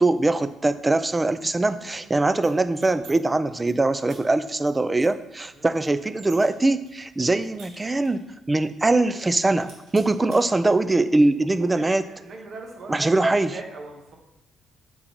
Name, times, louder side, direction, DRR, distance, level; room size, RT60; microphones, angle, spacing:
voice 1, 0.0-12.0 12.9-13.6, right 2 dB, 15° right, 13 dB, 0.3 m, -22 dB
voice 2, 1.5-2.1 5.5-5.7 10.1-10.7 11.5-14.1, right 3 dB, 50° right, 1 dB, 1.4 m, -42 dB
sound 1, 2.4-3.1 3.4-3.7 4.0-4.2 4.6-4.7 5.0-6.5 6.8-8.3 8.6-8.7 9.0-9.3 9.6-10.4, right 3 dB, 85° right, 1.9 m, -49 dB
7.9 x 3.9 x 4.4 m, 0.91 s
cardioid pair, 125°, 0 cm